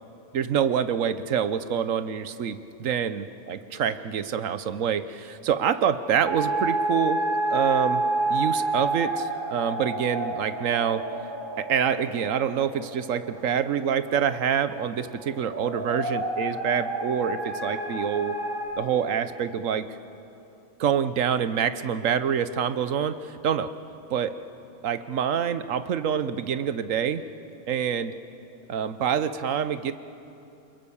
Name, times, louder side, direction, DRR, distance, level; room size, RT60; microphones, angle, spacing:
voice 1, 0.3-7.2 7.5-8.0 8.3-11.0 11.6-18.4 18.8-20.0 20.8-23.7 24.1-24.3 24.8-27.2 27.7-28.1 28.7-29.9, right 8 dB, 65° right, 12 dB, 1.2 m, -26 dB
sound 1, 6.2-18.7, right 2 dB, 35° right, 5.1 m, -29 dB
29.0 x 22.5 x 7.2 m, 2.9 s
omnidirectional pair, 1.6 m